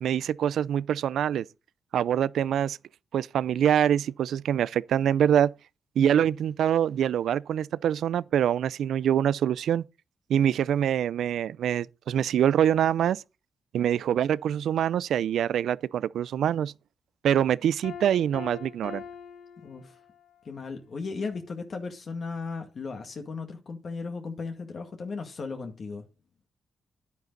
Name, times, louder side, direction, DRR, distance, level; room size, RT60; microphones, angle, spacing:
voice 1, 0.0-1.4 1.9-2.8 3.1-5.5 6.0-9.8 10.3-13.2 13.7-16.7 17.2-19.0, right 9 dB, 75° right, 0.5 m, -25 dB
Piano, 17.8-20.4, left 8 dB, 90° left, 1.3 m, -43 dB
voice 2, 19.6-20.0 20.4-26.0, left 4 dB, 45° left, 1.9 m, -36 dB
11.0 x 9.3 x 4.1 m
cardioid pair, 110°, 0 cm